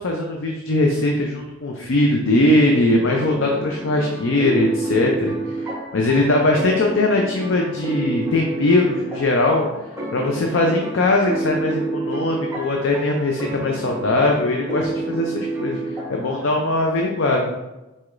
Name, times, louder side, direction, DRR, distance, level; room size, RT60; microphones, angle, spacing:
voice 1, 0.0-9.7 10.1-17.5, left 2 dB, 70° left, 1 dB, 0.5 m, -20 dB
sound 1, 3.1-16.8, right 2 dB, 15° right, 0.8 m, -29 dB
4.7 x 4.2 x 2.5 m, 1.0 s
head